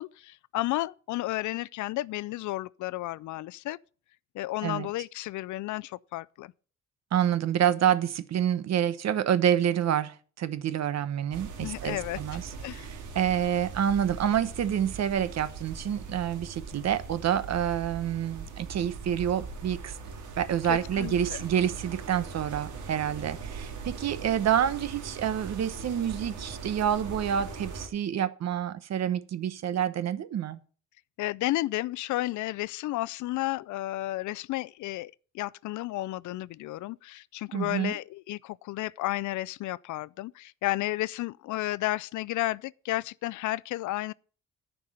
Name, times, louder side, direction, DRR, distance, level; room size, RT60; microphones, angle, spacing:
voice 1, 0.0-3.8 4.3-6.5 11.6-12.2 12.6-12.9 20.7-21.4 31.2-44.1, left 17 dB, 75° left, 0.5 m, -32 dB
voice 2, 7.1-12.4 12.7-19.9 20.4-30.6 37.5-38.0, right 9 dB, 60° right, 1.0 m, -28 dB
sound 1, 11.3-27.9, right 5 dB, 75° right, 2.4 m, -41 dB
9.8 x 5.4 x 7.7 m
cardioid pair, 90°, 30 cm